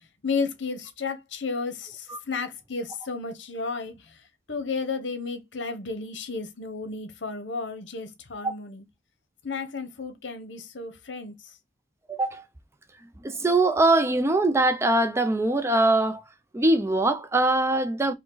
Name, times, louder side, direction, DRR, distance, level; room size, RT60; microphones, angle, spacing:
voice 1, 0.2-4.2 4.5-8.8 9.4-11.6, left 4 dB, 70° left, 1.0 m, -33 dB
voice 2, 12.1-12.4 13.2-16.2 16.5-18.1, right 2 dB, 15° right, 0.5 m, -22 dB
4.6 x 2.2 x 3.8 m
head